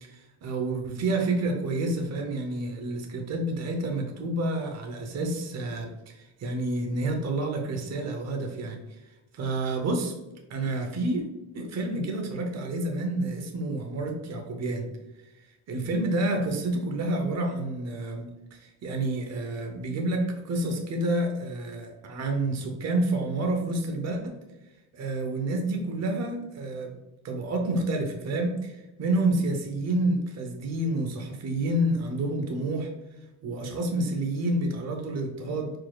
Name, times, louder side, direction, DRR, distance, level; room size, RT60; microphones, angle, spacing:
voice 1, 0.1-9.0 9.3-10.1 10.5-11.2 11.5-14.9 15.2-15.3 15.7-24.4 24.9-26.9 27.2-32.9 33.4-35.7, right 2 dB, 40° right, 3 dB, 0.8 m, -29 dB
4.7 x 4.0 x 2.4 m, 1.0 s
cardioid pair, 135°, 42 cm